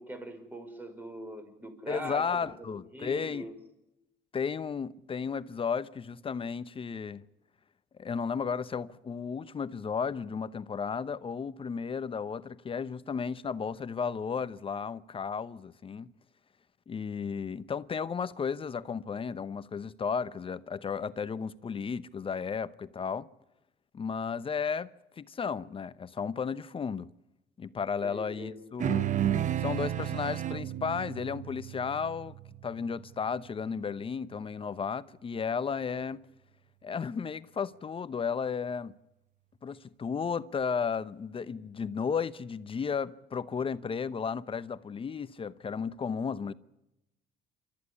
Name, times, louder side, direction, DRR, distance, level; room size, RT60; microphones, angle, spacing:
voice 1, 0.0-3.5 28.0-28.6, equal, 10° right, 5.7 m, -42 dB
voice 2, 1.9-3.5 4.3-7.2 7.9-16.1 16.9-23.3 23.9-27.1 27.6-29.1 29.6-32.3 32.6-36.2 36.8-38.9 39.6-46.5, left 6 dB, 30° left, 0.9 m, -34 dB
sound 1, 28.8-33.5, right 10 dB, 45° right, 0.9 m, -32 dB
29.0 x 14.0 x 9.9 m
cardioid pair, 110°, 17 cm